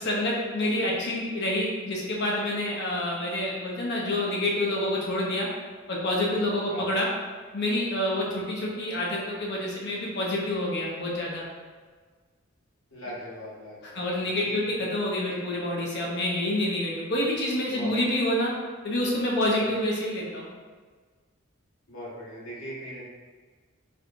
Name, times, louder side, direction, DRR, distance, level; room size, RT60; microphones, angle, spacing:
voice 1, 0.0-5.5 5.9-7.1 7.5-11.5 13.9-18.5 18.8-20.5, left 1 dB, 55° left, -3 dB, 0.8 m, -27 dB
voice 2, 12.9-14.1 14.4-14.6 17.7-18.0 19.5-19.6 21.9-23.1, equal, 75° left, -8 dB, 1.5 m, -40 dB
4.4 x 3.1 x 2.6 m, 1.5 s
head